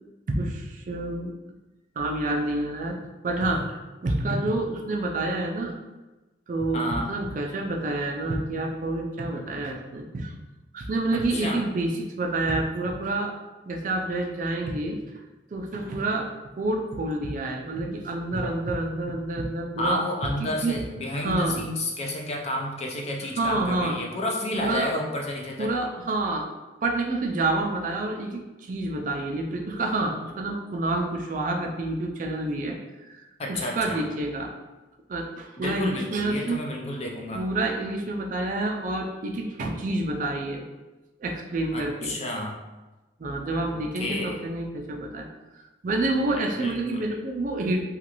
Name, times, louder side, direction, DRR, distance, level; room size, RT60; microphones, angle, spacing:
voice 1, 0.3-1.3 2.0-3.0 3.2-5.8 6.5-10.3 10.7-13.3 13.7-15.0 15.5-16.3 16.6-20.0 20.4-20.8 21.1-21.6 23.4-24.0 24.5-24.9 25.6-26.5 26.8-32.8 33.1-33.2 33.5-34.5 35.1-36.6 37.3-40.6 41.2-42.2 43.2-45.3 45.5-47.8, right 2 dB, 45° right, 2 dB, 0.3 m, -28 dB
voice 2, 6.7-7.1 11.1-11.6 19.8-25.7 33.4-34.0 35.6-37.4 41.7-42.5 43.7-44.4 46.3-47.0, left 1 dB, 35° left, 0 dB, 0.4 m, -31 dB
3.0 x 2.4 x 2.9 m, 1.1 s
head